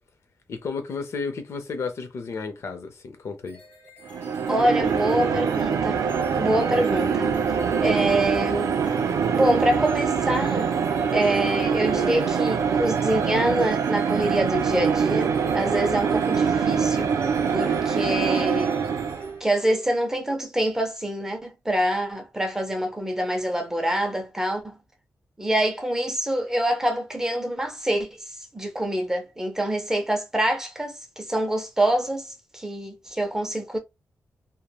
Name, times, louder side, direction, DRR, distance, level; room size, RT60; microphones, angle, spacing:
voice 1, 0.5-3.6, left 4 dB, 55° left, 0.6 m, -32 dB
sound 1, 3.5-20.1, right 1 dB, 25° left, 0.8 m, -44 dB
sound 2, 4.0-19.4, right 6 dB, 70° right, 0.4 m, -24 dB
voice 2, 4.5-6.0 6.4-7.4 7.8-8.7 9.3-10.7 11.1-17.1 17.5-18.7 19.4-24.8 25.4-33.8, right 1 dB, 10° right, 0.5 m, -25 dB
3.1 x 2.1 x 2.2 m
wide cardioid pair, 175°, 6 cm